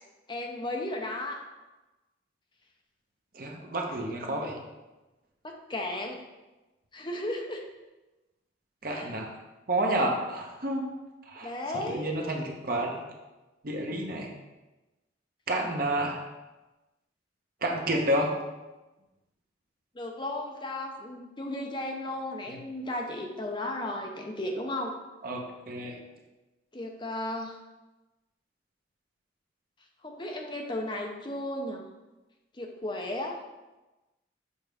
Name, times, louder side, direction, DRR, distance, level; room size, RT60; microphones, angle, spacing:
voice 1, 0.3-1.4 3.9-4.0 4.3-4.4 5.4-6.2 6.9-7.7 8.8-9.1 11.4-12.1 19.9-24.9 26.7-27.5 30.0-31.9 32.6-33.4, left 1 dB, 25° left, 2 dB, 0.6 m, -35 dB
voice 2, 3.3-4.6 8.8-9.3 9.7-10.9 11.3-13.0 13.6-14.3 15.5-16.2 17.6-18.4 22.5-22.6 25.2-26.0, right 1 dB, 50° right, 1 dB, 1.0 m, -30 dB
7.1 x 5.1 x 3.4 m, 1.1 s
head